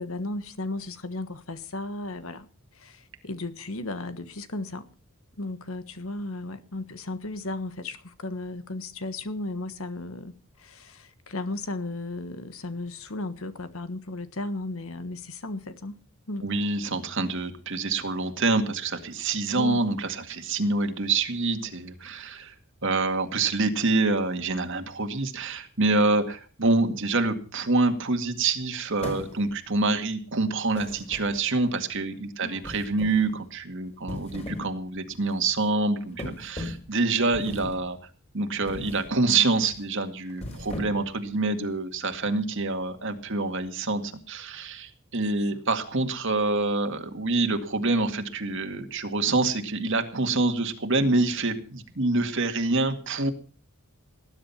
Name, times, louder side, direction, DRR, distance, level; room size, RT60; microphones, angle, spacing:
voice 1, 0.0-4.9 5.4-16.0 16.3-16.5 19.5-19.8 32.4-32.7 36.1-36.3, left 2 dB, 70° left, 1.4 m, -35 dB
voice 2, 16.4-22.5 22.8-38.0 38.3-53.3, right 3 dB, 60° right, 2.1 m, -26 dB
sound 1, 29.0-29.7 30.7-31.6 32.6-33.3 33.9-34.7 35.1-35.3 36.2-36.9 37.3-37.9 38.6-39.1 39.5-39.8 40.3-41.2, left 1 dB, 30° left, 4.4 m, -38 dB
19.0 x 10.5 x 5.8 m
head